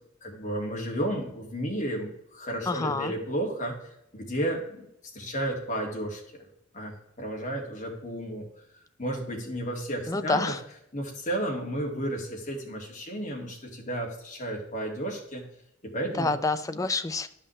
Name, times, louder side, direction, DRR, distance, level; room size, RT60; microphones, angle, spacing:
voice 1, 0.2-4.9 5.1-6.5 6.7-8.4 9.0-10.5 10.9-15.4 15.8-16.3, right 1 dB, 40° left, -1 dB, 2.1 m, -32 dB
voice 2, 2.7-3.1 10.1-10.6 16.2-17.3, left 3 dB, 15° left, 10 dB, 0.4 m, -27 dB
12.0 x 5.6 x 3.2 m, 0.80 s
head